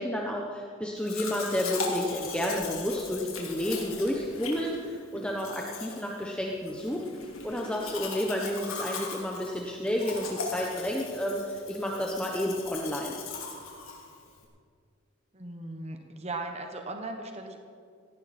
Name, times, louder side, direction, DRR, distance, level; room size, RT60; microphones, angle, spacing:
voice 1, 0.0-7.0 7.4-13.2, left 1 dB, 5° left, -1 dB, 1.0 m, -31 dB
Domestic sounds home sounds, 1.0-14.4, left 4 dB, 85° left, 3.0 m, -39 dB
voice 2, 15.3-17.6, right 2 dB, 30° right, 4 dB, 1.1 m, -37 dB
17.5 x 16.5 x 4.3 m, 2.2 s
head